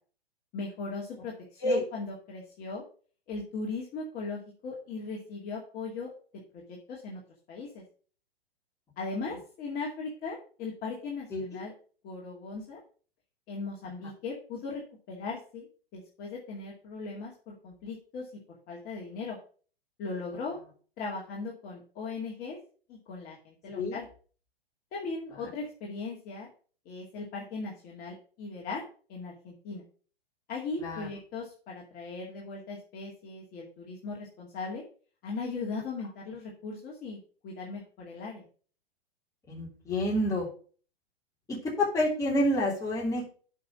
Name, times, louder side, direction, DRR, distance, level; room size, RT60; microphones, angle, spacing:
voice 1, 0.5-2.8 3.3-6.1 6.5-7.2 7.5-7.8 9.0-11.7 12.0-12.8 13.5-15.7 15.9-18.4 18.7-19.4 20.0-20.6 21.0-22.6 22.9-24.1 24.9-26.5 26.9-28.8 29.1-29.8 30.5-34.8 35.2-38.5, left 4 dB, 30° left, -3 dB, 2.3 m, -38 dB
voice 2, 39.5-40.5 41.8-43.3, left 1 dB, 10° left, -4 dB, 3.2 m, -28 dB
8.4 x 5.7 x 6.2 m, 0.41 s
hypercardioid pair, 120°, 31 cm